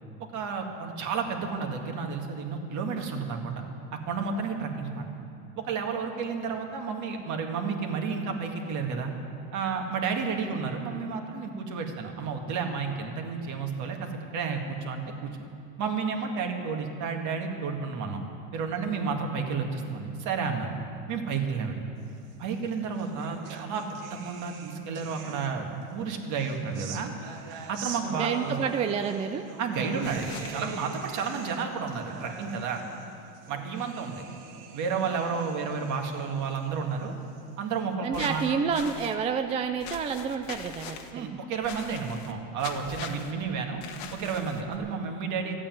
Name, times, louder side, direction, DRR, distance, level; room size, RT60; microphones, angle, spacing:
voice 1, 0.3-3.6 4.1-5.1 5.6-9.1 9.5-15.3 15.8-18.2 18.5-20.7 21.1-21.8 22.4-23.8 24.2-27.1 27.7-28.6 29.6-32.8 33.5-34.2 34.7-37.1 37.6-38.4 41.1-43.8 44.1-45.6, right 5 dB, 45° right, 3 dB, 2.0 m, -31 dB
sound 1, 22.4-25.8 26.3-37.8, right 6 dB, 70° right, 1.7 m, -44 dB
voice 2, 28.1-29.5 38.0-41.4, right 6 dB, 15° right, 6 dB, 0.3 m, -29 dB
sound 2, 30.0-30.6 38.1-39.1 39.8-41.1 41.6-42.3 42.6-43.3 43.8-44.8, left 7 dB, 70° left, 1.5 m, -41 dB
14.5 x 8.6 x 9.2 m, 2.6 s
supercardioid pair, 130°, 41 cm